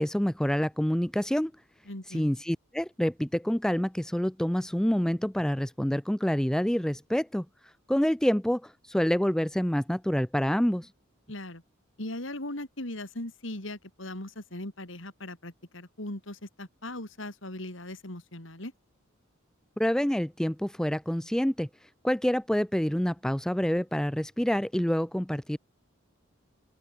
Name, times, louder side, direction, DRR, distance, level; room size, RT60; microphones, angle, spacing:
voice 1, 0.0-1.5 2.1-7.5 7.9-10.9 19.8-21.7 22.0-25.6, equal, 5° left, 0.4 m, -27 dB
voice 2, 1.9-2.3 11.3-11.6 12.0-18.7, left 1 dB, 65° left, 3.9 m, -39 dB
open air
head